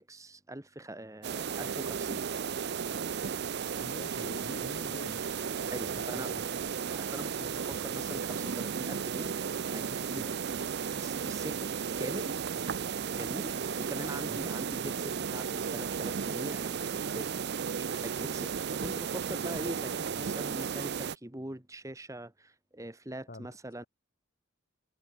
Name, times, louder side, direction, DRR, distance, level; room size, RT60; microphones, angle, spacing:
voice 1, 0.0-2.3 5.7-6.3 6.9-10.4 10.8-11.7 12.0-12.4 13.1-23.8, right 1 dB, 15° right, 1.4 m, -43 dB
sound 1, 1.2-21.1, right 6 dB, 50° right, 0.5 m, -34 dB
voice 2, 3.8-5.2 5.8-6.4 14.3-14.5 23.3-23.5, left 1 dB, 40° left, 3.5 m, -45 dB
head